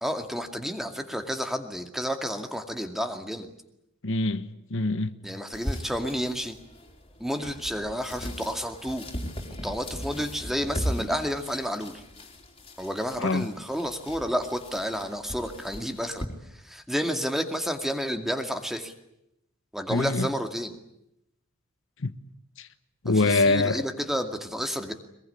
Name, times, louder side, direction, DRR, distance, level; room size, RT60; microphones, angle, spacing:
voice 1, 0.0-3.5 5.2-6.5 7.2-9.1 9.6-12.0 12.8-16.2 16.6-18.9 19.7-20.8 23.1-24.9, equal, ahead, 2.3 m, -30 dB
voice 2, 4.0-5.1 13.2-13.4 19.9-20.3 22.0-22.1 22.6-22.7 23.0-23.8, left 3 dB, 65° left, 1.1 m, -24 dB
sound 1, 5.5-16.3, equal, 25° left, 4.1 m, -38 dB
23.0 x 22.0 x 10.0 m
head